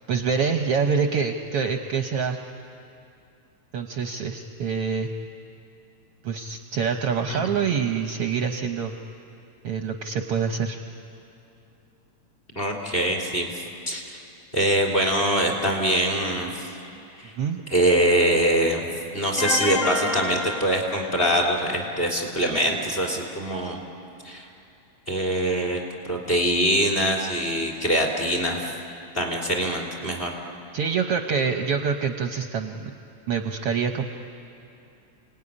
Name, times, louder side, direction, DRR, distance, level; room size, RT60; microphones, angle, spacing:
voice 1, 0.1-2.4 3.7-5.1 6.2-8.9 9.6-10.8 17.4-17.6 30.7-32.9 33.3-34.0, right 6 dB, 65° right, 5 dB, 1.6 m, -26 dB
voice 2, 12.5-13.5 13.9-14.2 14.5-16.7 17.2-17.3 17.7-23.8 24.2-24.5 25.1-25.8 26.1-28.7 29.1-30.3, right 1 dB, 20° left, 0 dB, 3.3 m, -23 dB
sound 1, 19.4-21.5, left 3 dB, 40° left, 1.9 m, -28 dB
28.5 x 18.5 x 9.9 m, 2.7 s
omnidirectional pair, 3.3 m